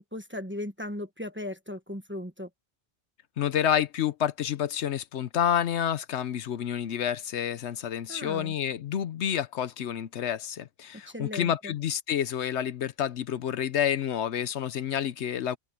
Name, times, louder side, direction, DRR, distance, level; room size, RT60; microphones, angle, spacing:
voice 1, 0.0-2.5 8.1-8.5 11.1-11.7, left 1 dB, 10° right, 1.1 m, -37 dB
voice 2, 3.4-15.6, left 9 dB, 75° left, 1.0 m, -29 dB
omnidirectional pair, 1.2 m